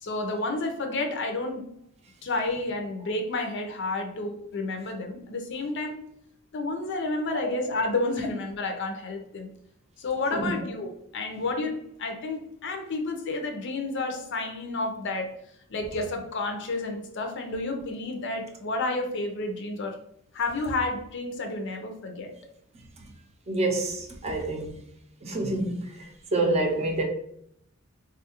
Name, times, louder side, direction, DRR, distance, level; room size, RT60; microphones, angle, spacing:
voice 1, 0.0-1.7 2.2-6.0 6.5-9.5 10.0-15.4 15.7-20.0 20.3-22.3, left 2 dB, 60° left, 0.5 m, -30 dB
voice 2, 23.5-24.8 25.2-27.0, right 2 dB, 30° right, 0.6 m, -28 dB
3.6 x 2.3 x 2.8 m
head